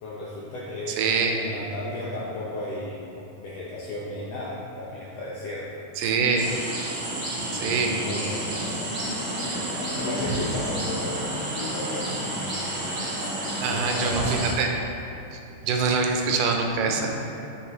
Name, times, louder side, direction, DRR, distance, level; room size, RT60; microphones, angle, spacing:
voice 1, 0.0-3.0 3.3-5.8 7.4-8.9 9.3-12.4 13.5-14.4 16.1-16.4 16.9-17.2, left 1 dB, 75° left, -6 dB, 1.5 m, -35 dB
voice 2, 0.9-1.4 6.0-6.5 7.5-8.0 13.6-14.7 15.3-17.1, right 4 dB, 85° right, 2 dB, 2.3 m, -24 dB
sound 1, 6.4-14.5, right 1 dB, 55° right, 1.2 m, -30 dB
9.2 x 6.4 x 2.9 m, 2.9 s
omnidirectional pair, 3.8 m